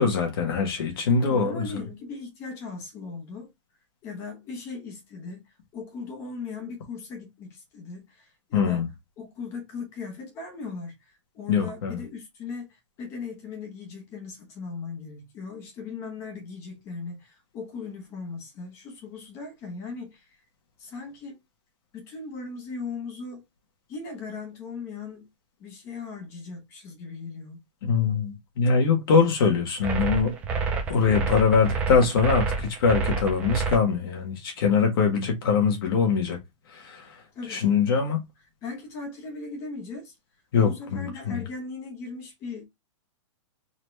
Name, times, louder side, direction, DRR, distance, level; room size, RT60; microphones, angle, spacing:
voice 1, 0.0-1.8 8.5-8.9 11.5-12.0 27.8-30.4 30.9-36.4 36.7-37.1 37.5-38.2 40.5-41.4, left 5 dB, 45° left, 1.6 m, -23 dB
voice 2, 1.2-3.5 4.0-8.8 9.2-20.3 20.8-21.4 21.9-23.4 23.9-25.3 25.6-27.6 37.3-37.6 38.6-40.1 40.6-42.6, left 4 dB, 15° left, 0.9 m, -38 dB
sound 1, 29.8-33.8, right 5 dB, 10° right, 0.4 m, -28 dB
4.1 x 2.9 x 3.3 m
hypercardioid pair, 180°, 16 cm